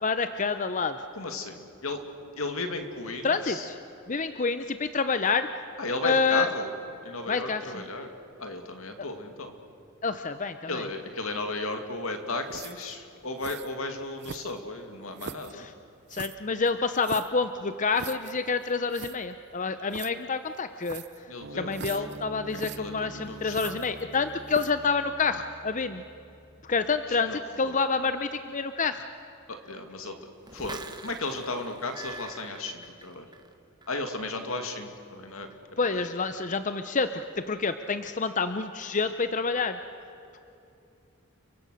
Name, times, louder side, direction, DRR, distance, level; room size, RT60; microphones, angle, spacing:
voice 1, 0.0-1.0 3.2-3.8 4.1-5.5 6.0-6.5 7.3-7.8 10.0-10.9 15.5-15.7 16.1-21.3 21.5-26.0 26.6-29.0 35.8-39.8, left 4 dB, 35° left, 10 dB, 0.7 m, -28 dB
voice 2, 1.1-2.0 2.4-3.7 5.8-6.7 7.0-8.1 8.4-9.6 10.7-15.6 21.3-22.0 22.8-23.8 27.1-27.8 29.5-30.2 30.5-33.3 33.9-35.5 35.8-36.1, left 2 dB, 80° left, 6 dB, 2.5 m, -35 dB
sound 1, 12.5-12.9 13.4-13.7 14.2-14.7 15.2-15.5 16.1-17.4 18.0-18.3 18.6-18.7 18.9-19.2 19.9-20.1 20.8-21.2 21.7-22.2 22.5-22.8 23.5-24.1 24.5-24.8, right 6 dB, 55° right, 0.8 m, -40 dB
sound 2, 21.4-28.1, right 1 dB, 75° right, 2.0 m, -47 dB
sound 3, 30.4-33.5 33.8-34.2, right 3 dB, 20° right, 1.3 m, -44 dB
30.0 x 23.5 x 6.6 m, 2.8 s
head